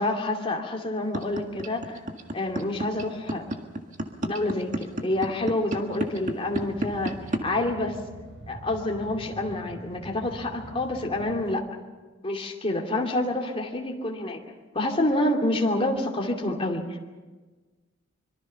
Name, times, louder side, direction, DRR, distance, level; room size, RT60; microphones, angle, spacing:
voice 1, 0.0-2.0 2.3-3.5 4.2-8.0 8.5-11.6 12.2-14.4 14.7-16.8, left 1 dB, 30° left, 2 dB, 2.6 m, -28 dB
sound 1, 1.1-7.4, right 1 dB, 40° right, 1.9 m, -29 dB
sound 2, 6.5-11.6, right 1 dB, 65° right, 3.5 m, -44 dB
25.0 x 23.0 x 5.8 m, 1.3 s
head